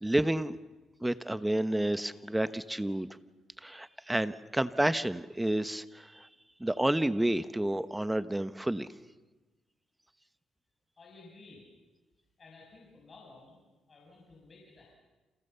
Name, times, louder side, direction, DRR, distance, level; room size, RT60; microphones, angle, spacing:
voice 1, 0.0-0.6 1.0-3.1 3.6-6.3 6.6-8.9, right 1 dB, 10° right, 13 dB, 1.1 m, -30 dB
voice 2, 11.0-11.6 12.4-13.6 13.9-15.0, left 3 dB, 40° left, -1 dB, 7.0 m, -54 dB
29.0 x 28.5 x 7.0 m, 1.2 s
cardioid pair, 90°, 0 cm